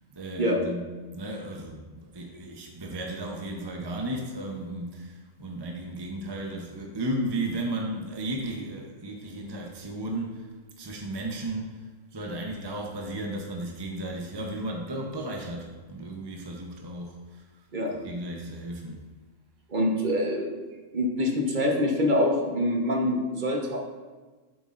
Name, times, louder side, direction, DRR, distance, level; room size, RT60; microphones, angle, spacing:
voice 1, 0.2-0.8 1.1-10.5 10.8-11.8 12.1-17.4 18.0-19.0, right 1 dB, 25° right, 0 dB, 0.6 m, -34 dB
voice 2, 19.7-20.6 20.9-23.8, left 1 dB, 40° right, 0 dB, 1.1 m, -25 dB
8.1 x 7.1 x 2.5 m, 1.3 s
omnidirectional pair, 1.3 m